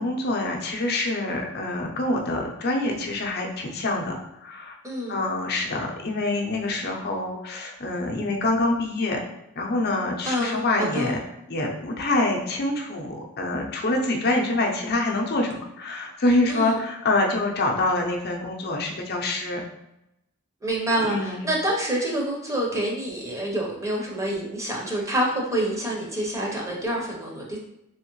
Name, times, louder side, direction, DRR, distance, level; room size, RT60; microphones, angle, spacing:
voice 1, 0.0-4.7 5.1-9.2 9.6-11.2 11.5-19.6 21.0-21.5, left 2 dB, 50° left, 1 dB, 0.7 m, -26 dB
voice 2, 4.8-5.2 10.2-10.6 10.9-11.1 16.5-16.8 20.6-27.6, right 1 dB, 15° right, -2 dB, 0.8 m, -27 dB
3.5 x 3.1 x 3.0 m, 0.87 s
head